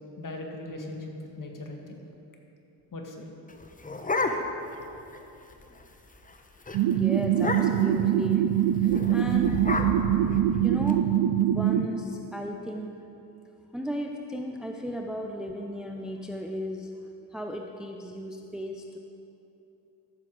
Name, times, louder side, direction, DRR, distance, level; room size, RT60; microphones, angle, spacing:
voice 1, 0.2-2.0 2.9-3.2, left 2 dB, 40° left, 2 dB, 2.1 m, -39 dB
sound 1, 3.5-4.8 5.1-5.2 5.5-5.8 6.2-6.4 6.7-6.8 7.3-8.0 8.8-10.9, left 2 dB, 15° left, 0.9 m, -31 dB
sound 2, 6.7-11.9, right 11 dB, 50° right, 0.6 m, -23 dB
voice 2, 6.9-10.0 10.5-11.1 11.4-13.0 13.7-16.9 17.3-19.0, equal, ahead, 3 dB, 0.6 m, -35 dB
13.0 x 7.6 x 4.9 m, 2.9 s
supercardioid pair, 60°, 49 cm